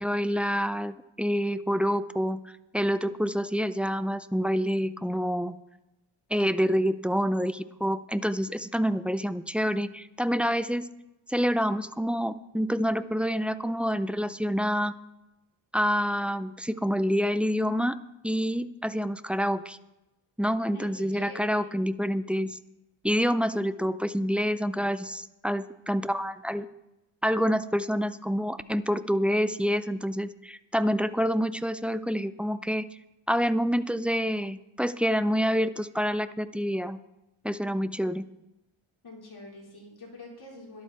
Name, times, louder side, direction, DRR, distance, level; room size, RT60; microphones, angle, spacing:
voice 1, 0.0-2.4 2.7-5.6 6.3-10.8 11.3-14.9 15.7-18.0 18.2-19.8 20.4-22.6 23.0-26.7 27.2-32.9 33.3-37.0 37.4-38.2, equal, 5° right, 13 dB, 0.4 m, -27 dB
voice 2, 20.7-21.8 39.0-40.8, left 2 dB, 50° left, -2 dB, 4.4 m, -45 dB
13.0 x 11.5 x 4.3 m, 0.95 s
cardioid pair, 80°, 50 cm